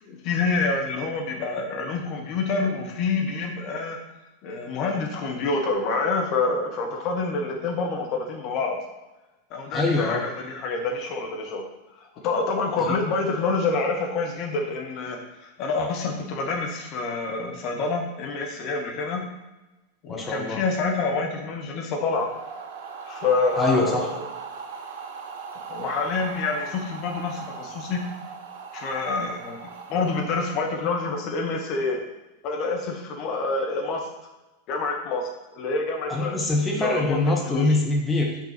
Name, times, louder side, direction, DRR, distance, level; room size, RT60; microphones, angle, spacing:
voice 1, 0.0-4.0 4.4-8.8 9.5-11.6 12.0-19.2 20.0-22.3 23.1-24.2 25.7-28.0 28.7-32.0 32.4-34.1 34.7-35.3 35.5-36.4 36.8-37.7, left 3 dB, 40° left, 1 dB, 1.2 m, -27 dB
voice 2, 9.7-10.2 12.8-12.9 20.1-20.6 23.6-24.1 36.1-38.4, left 2 dB, 15° left, -1 dB, 1.2 m, -24 dB
sound 1, 22.1-31.2, right 5 dB, 50° right, 0.8 m, -39 dB
5.7 x 4.4 x 6.0 m, 1.1 s
figure-of-eight pair, 90°, 0 cm